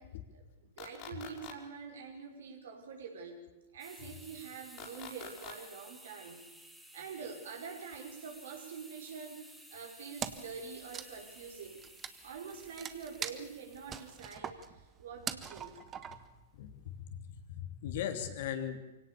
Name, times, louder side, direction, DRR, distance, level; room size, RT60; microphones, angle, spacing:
voice 1, 0.0-3.4 3.7-6.4 6.9-11.8 12.2-15.7, right 5 dB, 70° right, 2 dB, 5.7 m, -46 dB
sound 1, 0.8-1.5 4.8-5.5, left 7 dB, 40° left, 4.7 m, -46 dB
sound 2, 3.8-14.3, right 1 dB, 5° right, 3.2 m, -55 dB
Wood, 10.2-10.6 10.8-16.4, right 8 dB, 25° right, 1.5 m, -42 dB
voice 2, 16.5-18.8, left 9 dB, 60° left, 7 dB, 3.0 m, -39 dB
24.0 x 18.0 x 7.1 m, 1.0 s
hypercardioid pair, 115°, 0 cm